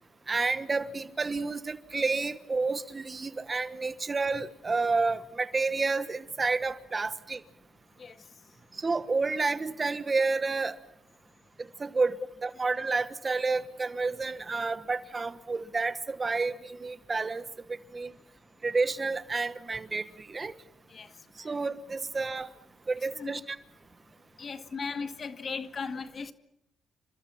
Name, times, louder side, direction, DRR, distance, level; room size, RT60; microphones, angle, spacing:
voice 1, 0.3-7.4 8.8-10.8 11.8-12.2 12.4-17.4 17.9-18.1 18.6-20.5 21.4-22.5 22.9-23.6, right 3 dB, 30° right, 1.2 m, -30 dB
voice 2, 20.9-21.5 23.1-23.5 24.4-26.3, left 5 dB, 40° left, 1.9 m, -38 dB
30.0 x 26.0 x 5.8 m
cardioid pair, 90°, 0 cm